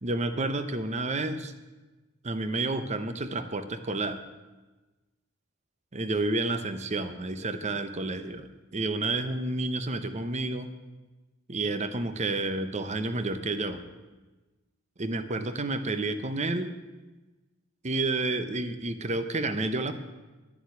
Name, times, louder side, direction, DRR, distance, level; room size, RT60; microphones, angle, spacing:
voice 1, 0.0-1.5 2.2-4.2 5.9-8.5 8.7-10.7 11.5-13.8 15.0-16.7 17.8-19.9, right 2 dB, 35° right, 10 dB, 0.8 m, -30 dB
11.5 x 7.1 x 9.3 m, 1.2 s
head